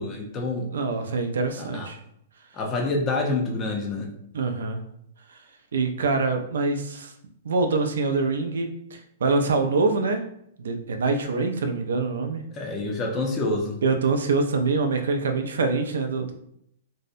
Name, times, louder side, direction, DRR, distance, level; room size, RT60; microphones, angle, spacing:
voice 1, 0.0-0.7 1.6-1.9 2.5-4.1 12.5-13.8, left 2 dB, 20° left, 1 dB, 0.5 m, -27 dB
voice 2, 0.7-2.0 4.3-4.8 5.7-7.1 7.4-10.2 10.6-12.4 13.8-16.3, right 3 dB, 85° right, 5 dB, 0.4 m, -25 dB
2.6 x 2.0 x 2.5 m, 0.72 s
hypercardioid pair, 150°, 0 cm